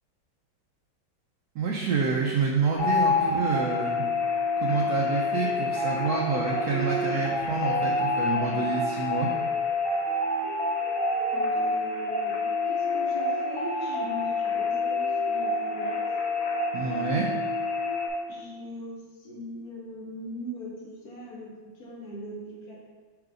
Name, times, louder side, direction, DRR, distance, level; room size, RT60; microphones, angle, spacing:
voice 1, 1.5-4.0 4.6-9.3 16.7-17.3, right 5 dB, 70° right, -2 dB, 0.9 m, -28 dB
sound 1, 2.8-18.1, left 3 dB, 85° left, 2.0 m, -27 dB
voice 2, 11.3-16.0 16.7-17.4 18.3-22.8, equal, 55° left, -4 dB, 1.5 m, -41 dB
4.8 x 4.7 x 4.9 m, 1.5 s
omnidirectional pair, 2.2 m